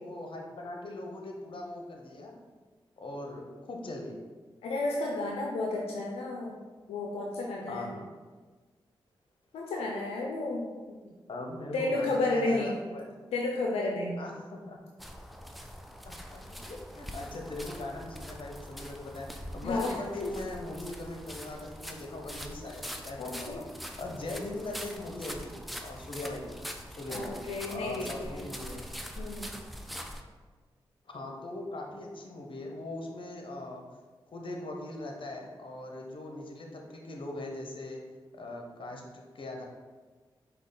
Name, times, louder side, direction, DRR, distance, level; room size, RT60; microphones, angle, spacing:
voice 1, 0.0-2.3 3.0-4.2 7.7-8.1 11.3-13.1 14.2-14.8 16.0-19.3 19.5-23.6 24.0-26.6 27.0-27.4 27.7-28.9 31.0-33.8 34.3-38.0 38.3-39.6, left 2 dB, 60° left, 1 dB, 0.8 m, -40 dB
voice 2, 4.6-6.6 6.9-7.9 9.5-11.0 11.7-12.7 13.3-14.2 19.6-19.9 20.2-20.3 23.2-23.6 27.1-28.5 29.2-29.5, left 2 dB, 90° left, -1 dB, 0.4 m, -32 dB
sound 1, 15.0-30.2, equal, ahead, 0.5 m, -43 dB
5.0 x 2.4 x 3.8 m, 1.4 s
supercardioid pair, 40°, 10 cm